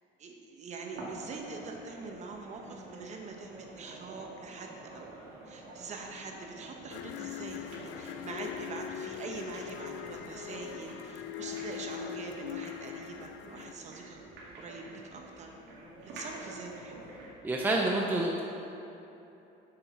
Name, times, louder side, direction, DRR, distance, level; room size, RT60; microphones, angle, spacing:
voice 1, 0.2-5.2 5.5-14.2 14.5-15.5 16.1-17.0, right 4 dB, 35° right, 2 dB, 1.0 m, -44 dB
sound 1, 0.9-17.4, right 1 dB, 65° right, 2.2 m, -48 dB
sound 2, 6.9-13.7, left 11 dB, 70° left, 0.4 m, -41 dB
voice 2, 17.4-18.4, right 2 dB, 10° right, -1 dB, 0.6 m, -28 dB
7.9 x 6.1 x 5.8 m, 2.9 s
cardioid pair, 150°, 20 cm